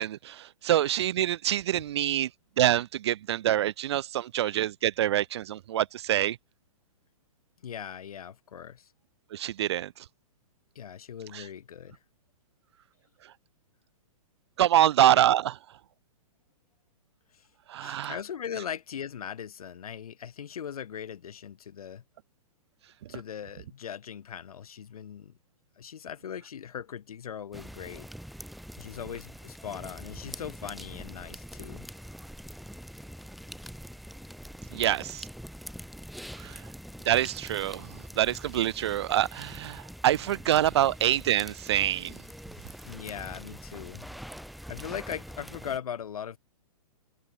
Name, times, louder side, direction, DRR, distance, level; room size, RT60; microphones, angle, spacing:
voice 1, 0.0-2.3 2.6-6.4 9.3-10.0 11.3-11.4 14.6-15.6 17.7-18.2 34.7-35.3 36.4-36.7 37.0-42.2, right 12 dB, 45° right, 0.6 m, -26 dB
voice 2, 7.6-8.9 10.8-12.0 17.3-17.5 17.8-22.0 23.1-25.4 25.8-28.1 28.8-31.9 42.8-44.1 44.7-46.4, left 8 dB, 75° left, 5.7 m, -39 dB
sound 1, 27.5-45.8, equal, ahead, 1.1 m, -44 dB
hypercardioid pair, 165°, 19 cm